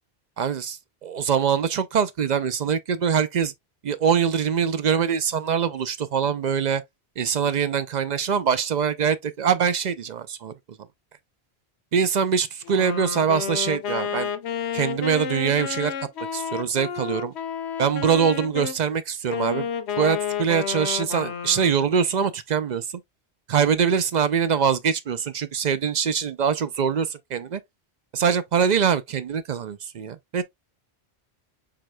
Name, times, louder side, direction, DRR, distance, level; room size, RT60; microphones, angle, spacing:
voice 1, 0.4-3.5 3.8-6.8 7.2-10.5 11.9-14.3 14.7-15.9 16.3-17.3 17.8-19.7 20.0-22.9 23.5-27.6 28.1-30.4, right 7 dB, 50° right, 0.6 m, -23 dB
Wind instrument woodwind instrument, 12.6-18.8 19.3-21.9, left 8 dB, 80° left, 1.0 m, -31 dB
4.8 x 4.3 x 2.2 m
omnidirectional pair, 1.1 m